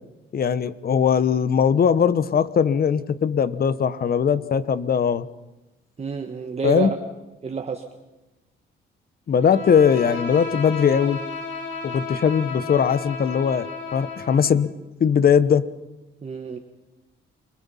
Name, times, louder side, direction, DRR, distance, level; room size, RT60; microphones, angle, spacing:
voice 1, 0.3-5.3 6.6-6.9 9.3-11.2 11.8-14.7 15.0-15.6, left 7 dB, 50° left, 15 dB, 1.1 m, -20 dB
voice 2, 6.0-6.9 7.4-7.9 16.2-16.6, right 5 dB, 30° right, 4 dB, 1.6 m, -29 dB
Bowed string instrument, 9.4-14.6, left 4 dB, 80° left, 5.1 m, -33 dB
29.0 x 21.0 x 5.7 m, 1.0 s
cardioid pair, 90°, 20 cm